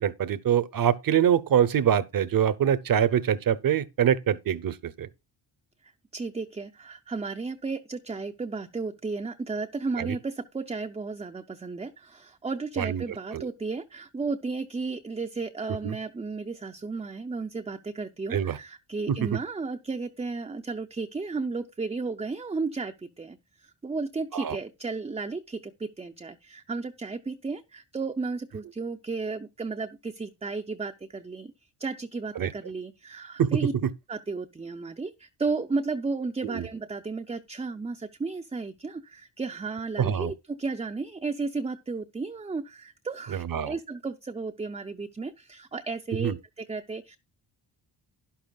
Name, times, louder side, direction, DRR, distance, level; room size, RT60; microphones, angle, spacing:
voice 1, 0.0-5.1 10.0-10.1 12.8-13.0 13.3-13.4 15.8-15.9 18.3-18.6 19.1-19.2 24.3-24.6 32.4-32.5 33.4-33.6 36.4-36.6 40.0-40.3 43.4-43.7 46.2-46.4, right 9 dB, 50° right, 0.8 m, -24 dB
voice 2, 6.1-31.5 31.8-33.7 34.1-47.2, right 4 dB, 15° right, 0.5 m, -33 dB
12.0 x 11.5 x 2.3 m
wide cardioid pair, 170°, 44 cm